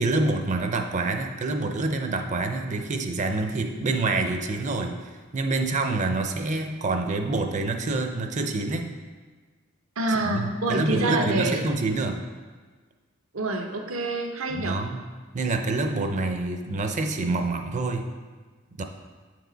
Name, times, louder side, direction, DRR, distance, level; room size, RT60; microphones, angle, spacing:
voice 1, 0.0-8.9 10.1-12.2 14.5-15.1 15.3-18.1 18.8-18.9, right 3 dB, 35° right, 5 dB, 0.5 m, -27 dB
voice 2, 10.0-11.6 13.3-14.8, right 2 dB, 85° right, 3 dB, 0.8 m, -26 dB
8.1 x 4.7 x 3.9 m, 1.4 s
head